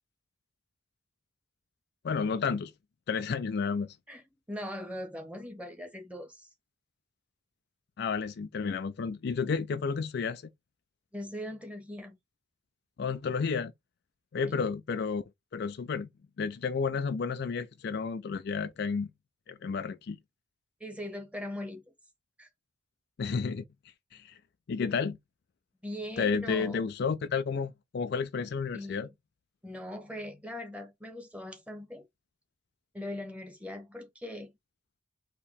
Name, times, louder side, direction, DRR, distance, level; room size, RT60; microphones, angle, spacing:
voice 1, 2.0-2.7 3.1-4.0 8.0-10.4 13.0-13.7 14.3-15.2 15.5-16.1 16.4-19.1 19.5-20.2 23.2-23.6 24.1-24.3 24.7-25.2 26.2-29.1, left 5 dB, 55° left, 0.4 m, -31 dB
voice 2, 4.1-6.5 11.1-12.2 14.4-14.6 20.8-21.8 22.4-22.5 25.8-26.9 28.7-29.1 29.6-32.0 32.9-34.5, left 1 dB, 5° right, 1.1 m, -40 dB
4.4 x 2.9 x 3.4 m
head